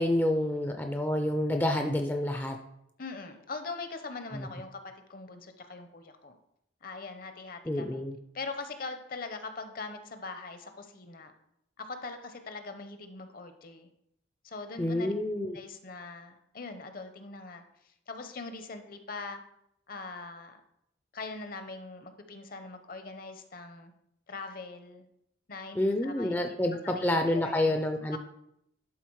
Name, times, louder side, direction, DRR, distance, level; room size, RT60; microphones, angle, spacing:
voice 1, 0.0-2.6 4.3-4.5 7.7-8.2 14.8-15.6 25.8-28.2, left 1 dB, 10° left, 4 dB, 0.5 m, -28 dB
voice 2, 3.0-6.4 6.8-8.0 8.3-11.3 11.8-13.9 14.4-15.1 15.5-19.4 19.9-20.6 21.1-23.9 24.3-25.1 25.5-26.4 26.8-27.8 28.1-28.2, left 3 dB, 50° left, 8 dB, 0.8 m, -42 dB
11.5 x 4.0 x 4.7 m, 0.76 s
head